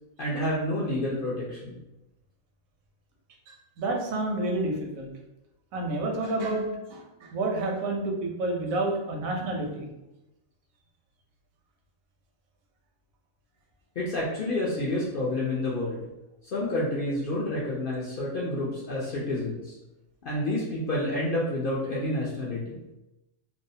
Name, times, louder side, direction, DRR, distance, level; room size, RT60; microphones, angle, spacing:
voice 1, 0.2-1.8 14.0-16.0 16.5-19.8 20.2-22.8, left 1 dB, 65° left, -6 dB, 0.5 m, -29 dB
voice 2, 3.5-5.1 5.7-9.9, right 2 dB, 85° right, 0 dB, 1.0 m, -29 dB
2.6 x 2.0 x 2.6 m, 0.96 s
omnidirectional pair, 1.4 m